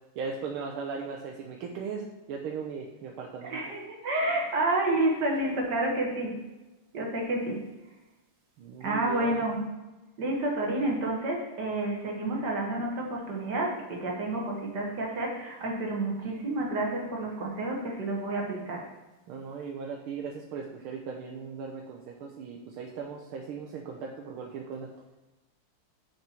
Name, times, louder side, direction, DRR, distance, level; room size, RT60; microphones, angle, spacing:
voice 1, 0.2-3.6 8.6-9.5 19.3-24.9, right 5 dB, 75° right, -1 dB, 1.7 m, -38 dB
voice 2, 3.4-6.4 6.9-7.6 8.8-9.6 10.2-18.9, right 2 dB, 55° right, 0 dB, 1.9 m, -29 dB
7.4 x 6.5 x 4.4 m, 1.1 s
omnidirectional pair, 2.4 m